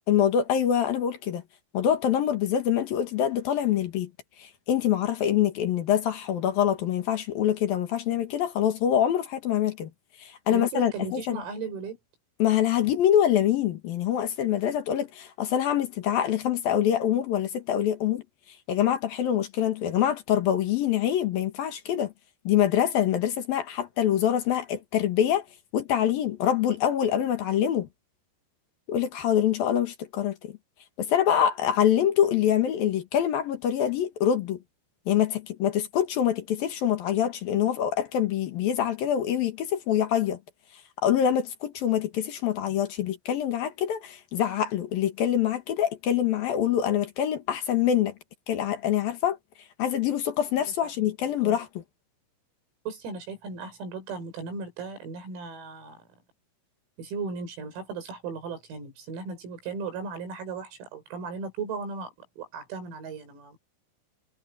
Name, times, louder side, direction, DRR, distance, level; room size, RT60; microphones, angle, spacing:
voice 1, 0.1-1.4 1.7-4.1 4.4-9.9 10.2-11.4 12.4-18.2 18.7-22.1 22.4-25.4 25.7-27.9 28.9-30.5 31.0-34.6 35.1-40.4 41.0-48.1 48.5-49.4 49.8-51.8, left 10 dB, 60° left, 2.8 m, -25 dB
voice 2, 10.5-12.0 50.6-51.1 51.4-51.6 52.9-56.0 57.0-63.6, right 4 dB, 85° right, 9.1 m, -36 dB
omnidirectional pair, 6.0 m